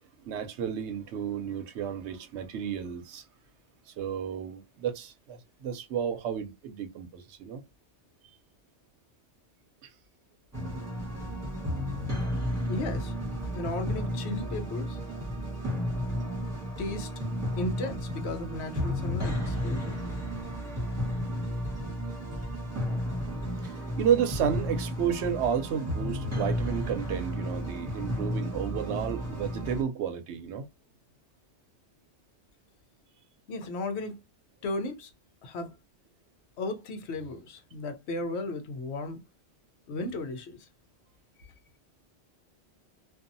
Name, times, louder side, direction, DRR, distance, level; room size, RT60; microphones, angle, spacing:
voice 1, 0.2-3.2 4.0-7.6 9.8-9.9 23.6-30.7, right 8 dB, 80° right, 0.9 m, -32 dB
sound 1, 10.5-29.8, equal, 15° right, 1.2 m, -33 dB
voice 2, 12.7-13.1 13.5-15.0 16.8-17.1 17.6-20.0 33.5-34.2 34.6-35.1 35.4-35.7 36.6-39.2 39.9-40.7 41.4-41.5, left 2 dB, 75° left, 0.9 m, -35 dB
2.6 x 2.3 x 2.5 m
omnidirectional pair, 1.2 m